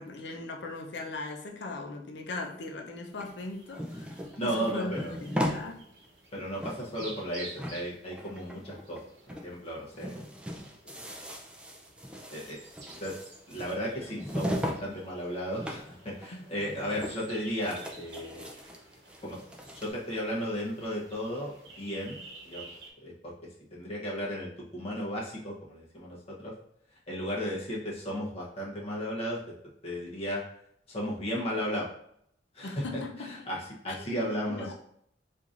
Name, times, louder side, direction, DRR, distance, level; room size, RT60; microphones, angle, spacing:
voice 1, 0.0-5.9 16.6-16.7 32.6-33.4 33.9-34.3 34.6-34.7, left 2 dB, 70° left, 1 dB, 0.6 m, -39 dB
sound 1, 3.1-22.9, right 2 dB, 70° right, 0.9 m, -52 dB
sound 2, 3.2-5.6 6.1-6.2 6.4-7.3 7.6-9.0 9.3-9.5 9.8-14.8 15.1-15.9 16.2-16.3 16.7-17.3 17.6-19.9, equal, 5° right, 0.4 m, -38 dB
voice 2, 4.3-5.2 6.3-9.0 9.3-10.2 10.8-11.1 12.3-12.6 13.0-13.1 13.5-18.5 19.2-19.4 19.7-21.5 21.8-22.2 22.4-22.7 23.0-23.3 23.7-26.5 27.1-29.4 29.8-30.4 30.9-31.9 32.5-34.7, equal, 35° left, -5 dB, 0.8 m, -34 dB
4.6 x 2.5 x 2.5 m, 0.70 s
head